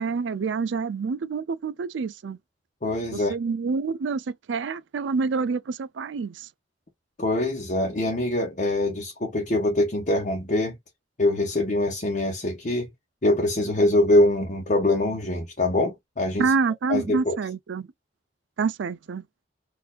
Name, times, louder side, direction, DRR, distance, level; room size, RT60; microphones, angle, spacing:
voice 1, 0.0-2.4 3.1-6.5 16.4-17.9 18.6-19.2, right 4 dB, 85° right, 0.4 m, -27 dB
voice 2, 2.8-3.3 7.2-10.8 11.2-12.9 13.2-16.5 16.9-17.3, left 1 dB, 45° left, 1.0 m, -23 dB
4.5 x 2.6 x 2.3 m
head